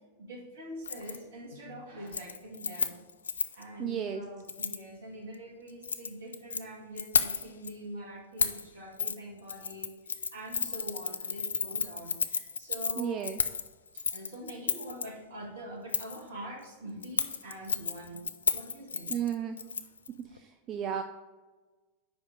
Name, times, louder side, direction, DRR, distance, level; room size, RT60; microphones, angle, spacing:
voice 1, 0.2-3.0 3.5-13.2 13.9-18.2 18.5-19.2 19.8-19.9, right 1 dB, 60° right, 1 dB, 1.7 m, -44 dB
Keys jangling, 0.8-1.2 1.5-1.8 2.1-3.6 4.5-4.8 5.7-6.6 7.0-7.7 8.4-8.6 9.0-9.2 9.5-15.0 15.9-16.2 17.0-20.1 20.4-20.5, left 5 dB, 70° left, 0.4 m, -32 dB
voice 2, 3.8-4.2 13.0-13.4 19.1-19.6 20.3-21.0, right 9 dB, 30° right, 6 dB, 0.4 m, -33 dB
5.1 x 5.1 x 6.1 m, 1.3 s
figure-of-eight pair, 90°, 0 cm